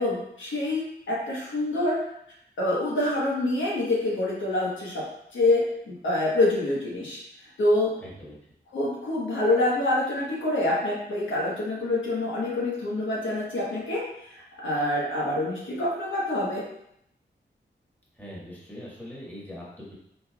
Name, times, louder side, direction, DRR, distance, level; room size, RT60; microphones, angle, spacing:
voice 1, 0.0-2.0 2.6-5.0 5.3-7.2 7.6-7.9 8.7-14.0 14.3-16.6, left 2 dB, 90° left, -5 dB, 1.1 m, -26 dB
voice 2, 8.0-8.5 18.1-19.9, equal, 10° left, -6 dB, 1.5 m, -42 dB
4.1 x 3.8 x 2.3 m, 0.75 s
wide cardioid pair, 75°, 19 cm